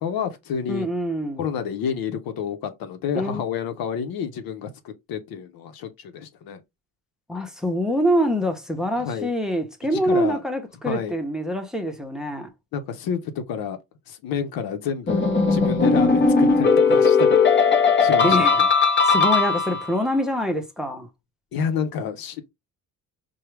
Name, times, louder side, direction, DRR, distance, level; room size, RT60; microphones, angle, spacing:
voice 1, 0.0-0.9 1.4-6.6 9.0-9.3 9.9-10.4 10.8-11.2 12.7-13.8 14.1-17.4 18.0-18.7 21.5-22.5, left 7 dB, 85° left, 0.9 m, -29 dB
voice 2, 0.7-1.4 3.1-3.4 7.3-12.5 18.2-18.5 19.0-21.1, equal, ahead, 0.9 m, -25 dB
sound 1, 15.1-20.0, left 4 dB, 30° left, 0.9 m, -18 dB
4.6 x 2.3 x 3.2 m
cardioid pair, 105°, 35 cm